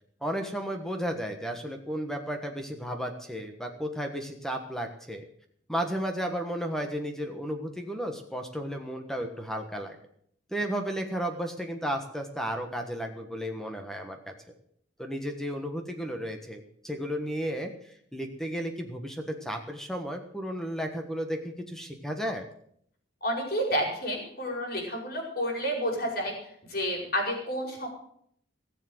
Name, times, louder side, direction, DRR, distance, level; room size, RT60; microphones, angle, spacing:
voice 1, 0.2-5.2 5.7-10.0 10.5-14.3 15.0-22.4, equal, ahead, 4 dB, 1.4 m, -33 dB
voice 2, 23.2-26.3 26.7-27.9, equal, 50° left, 0 dB, 5.2 m, -30 dB
18.0 x 7.4 x 7.9 m, 0.66 s
head